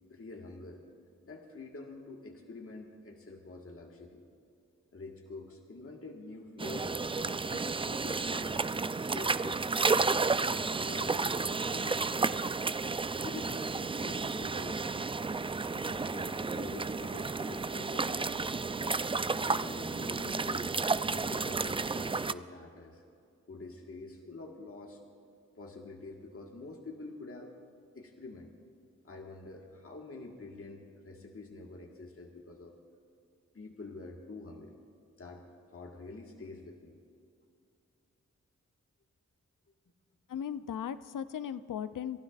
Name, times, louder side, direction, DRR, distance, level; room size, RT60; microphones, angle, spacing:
voice 1, 0.1-0.9 1.2-4.2 4.9-8.6 9.1-9.7 10.1-12.3 13.2-14.8 15.7-18.5 19.4-20.8 21.1-23.0 23.5-25.0 25.5-27.5 27.9-28.5 29.0-32.8 33.5-34.8 35.2-37.0, left 3 dB, 45° left, 1 dB, 1.6 m, -47 dB
sound 1, 6.6-22.3, right 4 dB, 15° right, 0.3 m, -32 dB
voice 2, 40.3-42.2, left 8 dB, 75° left, 14 dB, 0.5 m, -37 dB
28.5 x 12.0 x 2.5 m, 2.5 s
cardioid pair, 40°, 32 cm